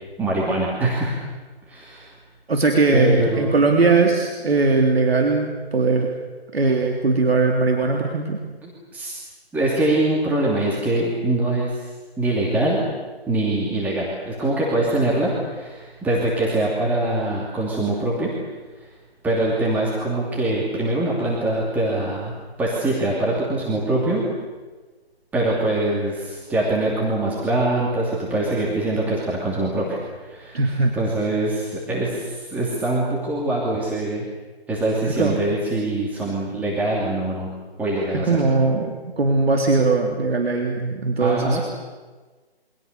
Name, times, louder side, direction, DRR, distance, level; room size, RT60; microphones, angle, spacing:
voice 1, 0.2-1.1 1.7-2.1 2.9-3.6 8.6-9.1 9.5-11.9 12.2-12.9 13.3-18.3 18.8-18.9 19.2-22.3 22.6-24.2 25.3-30.6 31.0-34.2 34.7-37.5 37.8-38.4 41.2-41.6, right 2 dB, 5° right, -5 dB, 2.8 m, -23 dB
voice 2, 2.5-6.1 6.5-8.4 30.5-30.9 35.1-35.4 38.1-41.6, right 3 dB, 70° right, 1 dB, 3.7 m, -20 dB
28.0 x 24.5 x 6.7 m, 1.3 s
figure-of-eight pair, 155°, 32 cm